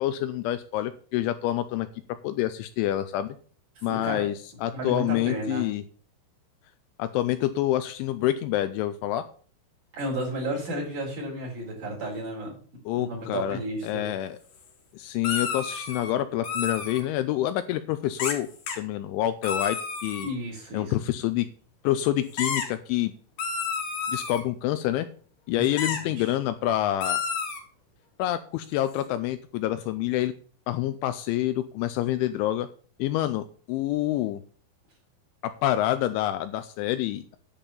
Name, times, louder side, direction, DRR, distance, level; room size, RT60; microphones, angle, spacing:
voice 1, 0.0-1.9 2.2-3.4 3.8-5.8 7.0-9.2 12.9-14.4 14.9-20.3 20.7-21.5 21.8-23.1 24.1-25.1 25.5-27.2 28.2-30.3 30.7-32.7 33.0-34.4 35.4-37.4, left 13 dB, 80° left, 11 dB, 2.9 m, -27 dB
voice 2, 3.8-4.3 4.7-5.7 9.9-12.6 12.9-14.1 20.2-20.9 25.6-26.3, right 1 dB, 40° right, -4 dB, 5.5 m, -33 dB
sound 1, 15.2-16.1 16.4-17.0 18.2-18.4 18.7-18.8 19.4-20.3 22.4-22.7 23.4-24.4 25.8-26.0 27.0-27.6, left 6 dB, 55° left, 2.7 m, -30 dB
10.5 x 5.3 x 7.1 m, 0.44 s
omnidirectional pair, 5.7 m